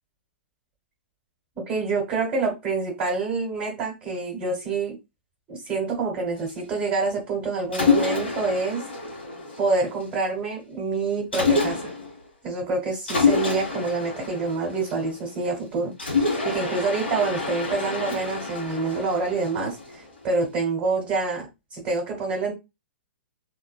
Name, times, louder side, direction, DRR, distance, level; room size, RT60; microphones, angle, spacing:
voice 1, 1.7-5.0 5.5-8.8 9.6-11.9 12.4-22.5, right 3 dB, 20° right, -1 dB, 1.4 m, -27 dB
Mechanisms, 7.7-10.1 11.3-12.2 13.1-15.4 16.0-20.2, left 4 dB, 70° left, 1.3 m, -27 dB
3.6 x 2.5 x 2.3 m, 0.24 s
figure-of-eight pair, 110°, 6 cm